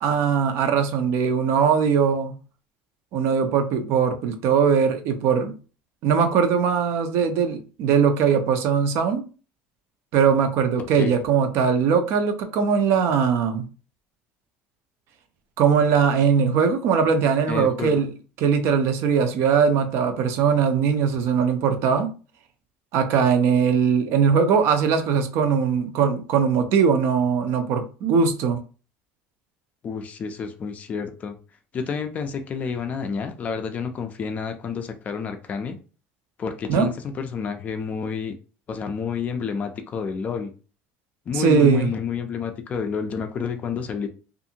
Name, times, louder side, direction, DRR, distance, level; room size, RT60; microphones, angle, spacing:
voice 1, 0.0-2.3 3.1-5.5 6.0-9.2 10.1-13.7 15.6-18.1 18.4-22.1 22.9-28.6 36.7-36.9 41.3-41.9, right 6 dB, 55° right, 0.5 m, -20 dB
voice 2, 17.5-18.0 29.8-31.4 31.7-35.8 36.4-38.4 38.7-40.5 41.3-44.1, left 6 dB, 30° left, 0.4 m, -29 dB
2.6 x 2.5 x 2.7 m
cardioid pair, 150°, 5 cm